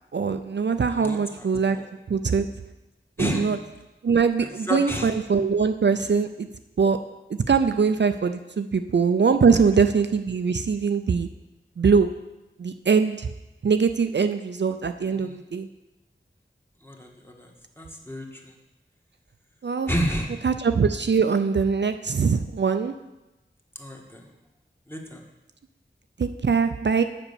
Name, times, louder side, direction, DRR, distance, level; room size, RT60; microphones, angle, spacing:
voice 1, 0.1-1.8 2.1-2.5 3.2-3.6 4.0-6.5 6.8-7.0 7.5-11.3 11.8-12.1 12.6-13.3 13.6-15.7 19.6-19.9 20.4-22.9 26.2-27.0, right 5 dB, 60° right, 8 dB, 0.4 m, -22 dB
voice 2, 0.9-1.5 1.7-1.9 3.2-3.5 4.4-5.1 15.0-15.4 16.8-17.5 17.8-18.5 19.9-20.4 23.8-24.3 24.9-25.2, equal, 10° left, 0 dB, 1.4 m, -31 dB
7.2 x 5.2 x 6.9 m, 1.0 s
wide cardioid pair, 50°, 20 cm